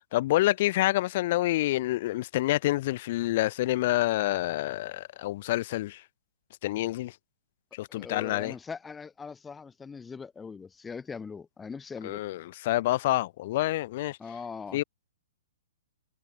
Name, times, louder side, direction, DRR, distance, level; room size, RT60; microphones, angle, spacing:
voice 1, 0.1-6.0 6.6-7.1 7.7-8.5 12.0-14.2 14.7-14.8, left 16 dB, 50° left, 2.0 m, -27 dB
voice 2, 7.9-12.2 14.2-14.8, left 5 dB, 10° left, 1.5 m, -41 dB
hypercardioid pair, 130°, 0 cm